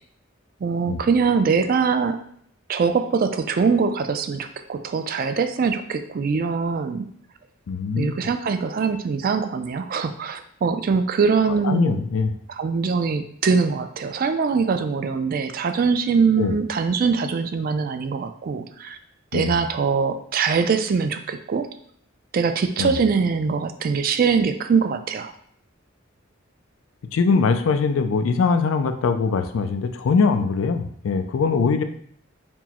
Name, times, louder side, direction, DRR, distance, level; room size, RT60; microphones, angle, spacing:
voice 1, 0.6-2.2 2.7-7.1 8.0-12.0 12.5-19.0 19.3-21.7 22.3-25.3, right 5 dB, 45° right, 9 dB, 0.3 m, -22 dB
voice 2, 7.7-8.1 11.6-12.3 16.4-16.5 19.3-19.5 22.8-23.0 27.1-31.8, left 5 dB, 85° left, 8 dB, 0.4 m, -22 dB
4.5 x 2.0 x 4.2 m, 0.64 s
head